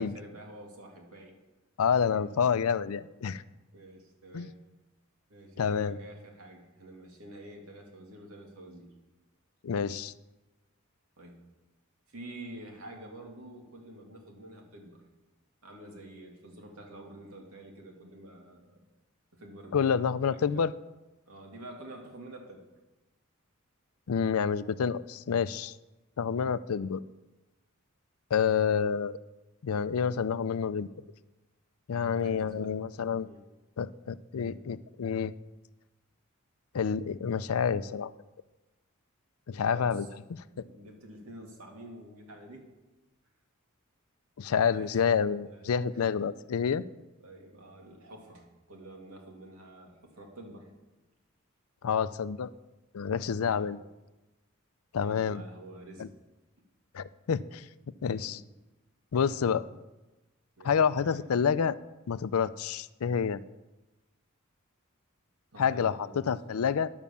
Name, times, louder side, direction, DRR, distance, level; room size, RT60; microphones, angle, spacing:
voice 1, 0.0-1.4 2.1-2.3 3.7-4.6 5.3-8.9 11.2-11.4 12.1-15.0 15.6-18.8 19.3-20.0 20.3-20.7 21.3-22.6 26.3-26.6 32.1-32.7 33.2-33.4 39.7-40.1 40.4-42.8 44.7-45.0 45.5-45.7 45.9-46.3 47.2-50.7 53.5-53.7 55.0-56.1 58.3-58.4 59.6-59.7 60.6-61.2 65.5-66.3, right 1 dB, 85° right, 1 dB, 2.3 m, -48 dB
voice 2, 1.8-3.4 4.3-4.5 5.6-6.0 9.6-10.1 19.7-20.7 24.1-25.7 26.2-27.0 28.3-29.1 29.6-30.9 31.9-33.3 33.8-35.3 36.7-38.1 39.5-40.1 40.6-40.7 44.4-46.8 51.8-52.5 52.9-53.8 54.9-55.4 56.0-56.1 56.9-57.6 58.0-58.4 59.1-59.6 60.6-61.8 62.1-63.4 65.6-66.0 66.3-66.9, left 6 dB, 80° left, 16 dB, 0.4 m, -28 dB
10.5 x 7.3 x 6.9 m, 1.1 s
head